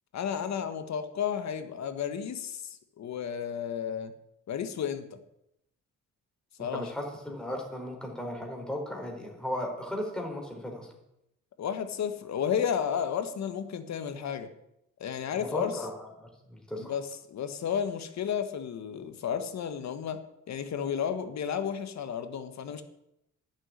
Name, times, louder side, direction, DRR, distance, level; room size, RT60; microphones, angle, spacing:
voice 1, 0.1-4.1 4.5-5.2 6.6-6.9 11.6-14.5 15.0-15.9 16.8-22.8, left 8 dB, 65° left, 9 dB, 1.6 m, -32 dB
voice 2, 6.6-10.9 15.3-16.9, left 1 dB, 5° left, 0 dB, 4.2 m, -36 dB
11.0 x 7.5 x 9.7 m, 0.82 s
cardioid pair, 90°, 30 cm